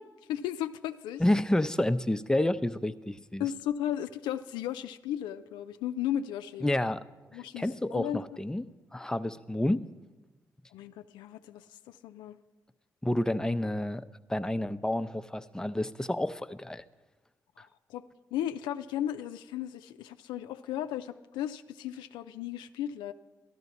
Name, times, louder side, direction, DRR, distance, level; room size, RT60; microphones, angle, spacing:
voice 1, 0.0-1.2 3.4-6.6 7.3-8.2 10.7-12.4 17.9-18.0 18.3-23.1, left 11 dB, 90° left, 9 dB, 0.4 m, -35 dB
voice 2, 1.2-3.5 6.6-7.0 7.3-9.9 13.0-14.0 14.3-16.8, left 1 dB, 10° left, 10 dB, 0.6 m, -29 dB
13.5 x 11.5 x 4.1 m, 1.2 s
supercardioid pair, 45°, 8 cm